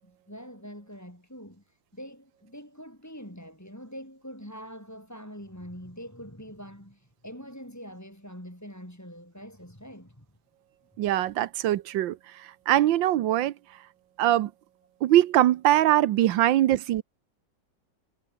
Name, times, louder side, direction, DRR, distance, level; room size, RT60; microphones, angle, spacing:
voice 1, 0.0-10.3, equal, 10° left, 7.8 m, -44 dB
voice 2, 11.0-13.5 14.2-14.5 15.0-17.0, right 13 dB, 90° right, 1.5 m, -22 dB
omnidirectional pair, 2.0 m